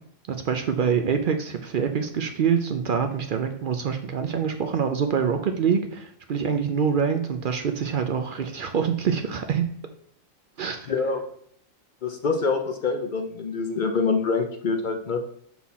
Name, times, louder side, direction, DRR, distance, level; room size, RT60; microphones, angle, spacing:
voice 1, 0.3-9.6 10.6-10.8, right 7 dB, 60° right, 6 dB, 0.5 m, -25 dB
voice 2, 10.9-11.2 12.0-15.2, left 4 dB, 50° left, 5 dB, 0.6 m, -25 dB
5.6 x 4.4 x 4.1 m, 0.66 s
omnidirectional pair, 1.4 m